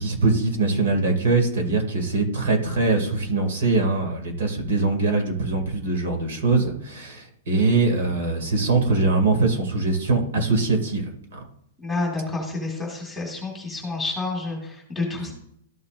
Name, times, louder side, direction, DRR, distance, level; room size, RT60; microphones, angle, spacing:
voice 1, 0.0-11.4 15.2-15.3, right 3 dB, 65° right, 3 dB, 2.3 m, -22 dB
voice 2, 11.8-15.3, left 3 dB, 5° left, -2 dB, 2.1 m, -29 dB
13.5 x 5.7 x 2.5 m, 0.71 s
hypercardioid pair, 165°, 0 cm